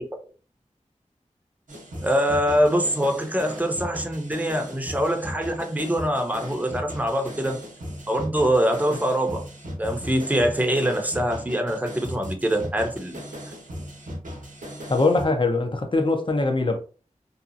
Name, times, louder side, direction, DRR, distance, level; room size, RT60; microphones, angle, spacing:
sound 1, 1.7-15.2, equal, 85° right, 0.7 m, -37 dB
voice 1, 2.0-7.6 8.1-9.4 9.8-13.2, equal, 10° right, 0.6 m, -24 dB
voice 2, 14.9-16.8, left 3 dB, 40° left, 0.6 m, -22 dB
2.7 x 2.3 x 2.5 m
wide cardioid pair, 65°, 13 cm